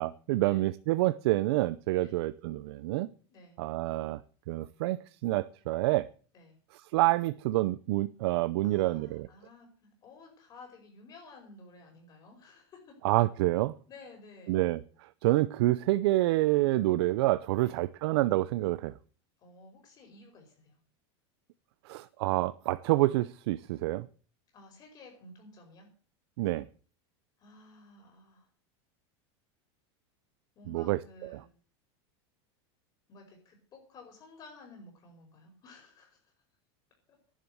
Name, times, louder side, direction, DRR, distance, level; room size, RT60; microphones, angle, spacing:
voice 1, 0.0-3.1 3.6-4.2 4.5-6.1 6.9-9.3 13.0-13.7 14.5-14.8 15.2-18.9 21.9-24.1 26.4-26.6 30.7-31.0 31.3-31.4, right 17 dB, 65° right, 0.7 m, -27 dB
voice 2, 8.6-12.9 13.9-14.6 17.6-17.8 19.4-20.8 24.5-25.9 27.4-28.5 30.5-31.5 33.1-36.3, left 3 dB, 30° left, 5.1 m, -53 dB
11.5 x 10.5 x 7.9 m
supercardioid pair, 155°, 14 cm